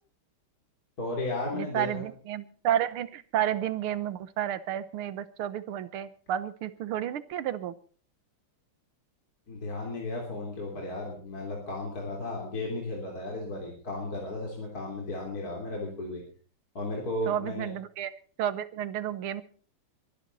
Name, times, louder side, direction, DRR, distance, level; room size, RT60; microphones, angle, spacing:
voice 1, 1.0-2.0 9.5-16.2 16.8-17.7, left 2 dB, 45° left, -1 dB, 3.9 m, -34 dB
voice 2, 1.5-7.7 17.3-18.1 18.4-19.4, right 11 dB, 80° right, 15 dB, 1.8 m, -31 dB
23.0 x 11.5 x 4.1 m, 0.41 s
omnidirectional pair, 2.4 m